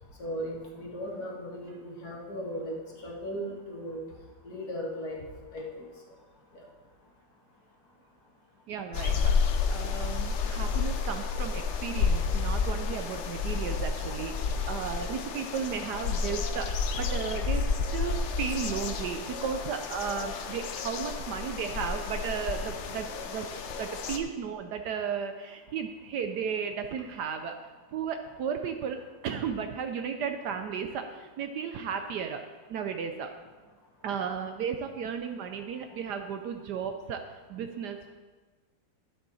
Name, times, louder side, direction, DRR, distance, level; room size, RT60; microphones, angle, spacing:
voice 1, 0.2-2.7 3.0-4.0 4.4-5.2 5.5-5.9, equal, 55° left, -3 dB, 2.3 m, -37 dB
voice 2, 8.7-9.4 9.7-17.6 17.9-23.5 23.8-27.6 27.9-32.4 32.7-33.3 34.0-37.2 37.5-38.1, right 7 dB, 70° right, 7 dB, 1.1 m, -34 dB
sound 1, 8.9-24.2, left 5 dB, 75° left, 0.6 m, -31 dB
12.5 x 7.3 x 4.2 m, 1.3 s
omnidirectional pair, 2.1 m